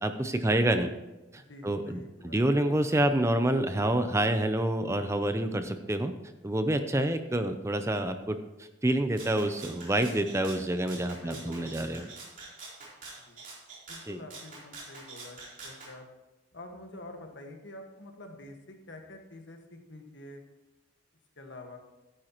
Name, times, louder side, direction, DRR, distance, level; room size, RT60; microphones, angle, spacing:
voice 1, 0.0-0.9 1.3-6.1 6.4-12.1 14.1-14.2, right 1 dB, 15° right, 8 dB, 0.5 m, -28 dB
voice 2, 1.4-2.4 10.9-11.7 13.2-13.4 13.9-15.4 15.6-16.1 16.5-20.4 21.4-21.8, left 1 dB, 70° left, 3 dB, 1.6 m, -47 dB
Rattle (instrument), 9.2-15.9, right 3 dB, 45° right, 3.7 m, -46 dB
13.0 x 9.9 x 3.0 m, 1.1 s
head